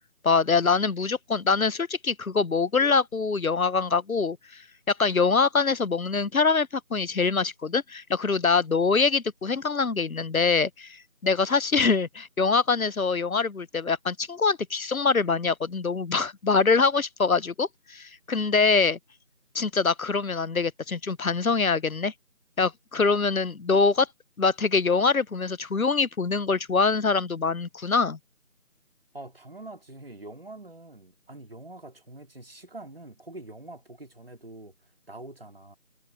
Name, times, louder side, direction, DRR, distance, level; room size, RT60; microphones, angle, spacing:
voice 1, 0.2-4.6 4.9-19.0 19.5-22.1 22.6-24.1 24.4-28.2, left 4 dB, 75° left, 0.9 m, -24 dB
voice 2, 29.1-34.7 35.1-35.8, right 2 dB, 40° right, 2.7 m, -44 dB
figure-of-eight pair, 175°, 42 cm